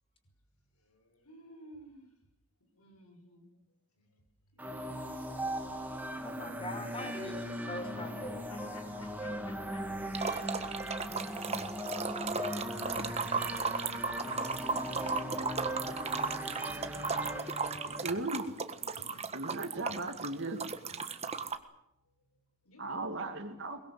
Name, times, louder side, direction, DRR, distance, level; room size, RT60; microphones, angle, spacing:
voice 1, 0.8-2.1 2.7-3.5 3.9-4.2 4.6-5.0 6.4-7.1 8.7-9.3 14.6-17.4 17.8-18.0 18.8-19.5 20.6-21.3 22.6-23.3, left 1 dB, 90° left, 4 dB, 6.9 m, -56 dB
sound 1, 4.6-18.1, equal, 10° right, 2.5 m, -39 dB
voice 2, 6.2-8.4, left 1 dB, 25° left, 4 dB, 5.3 m, -42 dB
sound 2, 10.1-21.6, right 4 dB, 30° right, 1.5 m, -36 dB
voice 3, 18.0-18.4 19.3-20.6 22.8-23.8, right 2 dB, 55° right, 2 dB, 2.5 m, -36 dB
23.0 x 21.0 x 8.0 m, 0.81 s
head